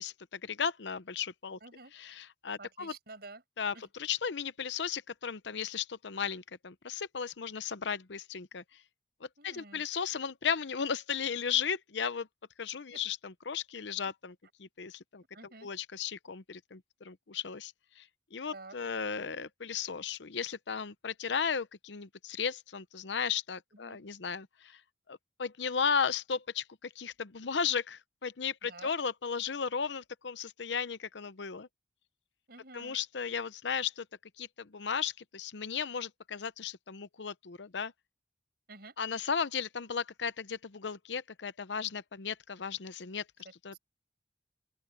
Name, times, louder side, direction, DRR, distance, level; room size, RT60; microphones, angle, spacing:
voice 1, 0.0-1.6 1.9-2.9 3.6-8.6 9.2-12.3 12.6-15.2 15.6-18.1 18.3-24.8 25.1-31.7 32.7-34.1 34.4-37.9 39.0-43.8, left 6 dB, 75° left, 0.7 m, -35 dB
voice 2, 1.6-1.9 2.6-3.4 3.7-3.8 9.4-9.8 12.9-13.0 15.3-15.7 18.5-18.7 23.7-24.0 28.6-28.9 32.5-33.0 38.7-38.9 43.7-43.8, right 3 dB, 60° right, 6.3 m, -50 dB
open air
head